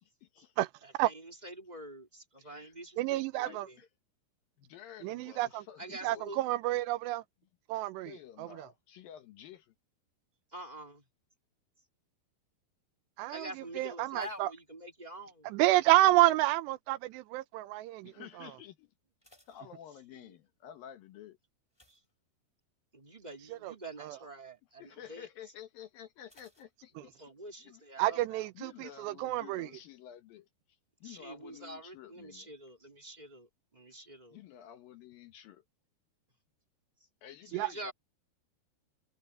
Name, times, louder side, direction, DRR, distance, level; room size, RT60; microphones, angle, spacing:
voice 1, 0.0-0.5 2.4-2.7 3.4-3.9 4.6-6.2 8.0-9.7 18.0-18.9 19.5-21.4 24.8-27.1 27.6-27.8 28.6-30.5 31.0-32.5 34.3-35.6 37.2-37.9, left 10 dB, 65° left, 2.7 m, -51 dB
voice 2, 0.8-3.8 5.8-6.4 10.5-11.0 13.3-15.5 20.1-20.3 21.9-22.0 22.9-25.3 27.0-28.4 31.0-34.4 37.5-37.9, right 1 dB, 15° right, 2.2 m, -46 dB
voice 3, 3.0-3.7 5.0-5.6 6.0-7.2 7.7-8.7 13.2-14.5 15.4-18.5 23.5-23.7 24.0-24.2 28.0-29.7 37.5-37.7, right 16 dB, 90° right, 3.0 m, -29 dB
sound 1, 14.1-15.6 15.8-16.4 17.0-17.3 17.6-17.7 18.1-18.2 18.9-20.4 21.7-22.8 23.2-23.5 23.8-23.9 26.3-27.5 27.7-27.8, left 1 dB, 5° left, 6.6 m, -67 dB
omnidirectional pair, 4.8 m